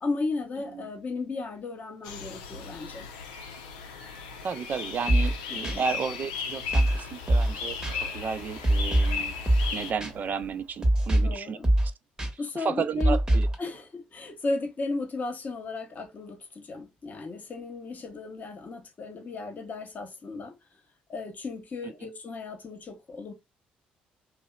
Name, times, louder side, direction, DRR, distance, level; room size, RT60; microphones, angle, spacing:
voice 1, 0.0-3.1 5.5-5.8 11.1-11.7 12.4-13.2 13.6-20.6 21.1-23.3, left 3 dB, 45° left, 0.9 m, -35 dB
sound 1, 2.0-9.9, left 6 dB, 85° left, 0.5 m, -36 dB
voice 2, 4.4-7.8 8.1-9.3 9.7-11.6 12.5-13.5 21.8-22.1, right 6 dB, 45° right, 0.4 m, -33 dB
sound 2, 5.1-5.4 5.6-5.8 6.7-7.0 7.3-7.6 7.8-7.9 8.6-9.2 9.5-9.7 10.0-10.1 10.8-11.4 11.6-11.9 12.2-12.3 13.0-13.6, right 1 dB, 20° right, 1.0 m, -22 dB
Breathing, 6.5-11.4, equal, 75° right, 0.8 m, -46 dB
2.8 x 2.0 x 2.2 m
hypercardioid pair, 55°, 4 cm